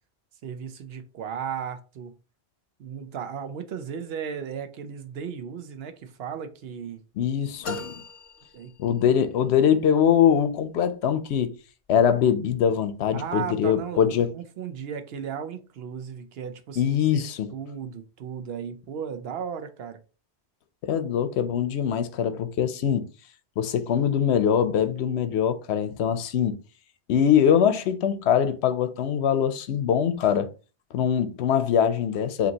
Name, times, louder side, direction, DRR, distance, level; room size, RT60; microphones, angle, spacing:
voice 1, 0.4-2.1 2.8-7.0 8.5-8.7 13.1-17.2 17.5-20.0, right 7 dB, 70° right, 0.8 m, -35 dB
voice 2, 7.2-8.0 8.8-11.5 11.9-14.3 16.8-17.5 20.8-23.1 23.6-26.6 27.1-30.5 30.9-32.5, left 8 dB, 85° left, 0.9 m, -23 dB
sound 1, 7.6-9.3, left 2 dB, 50° left, 0.4 m, -39 dB
5.1 x 2.8 x 2.8 m
omnidirectional pair, 1.1 m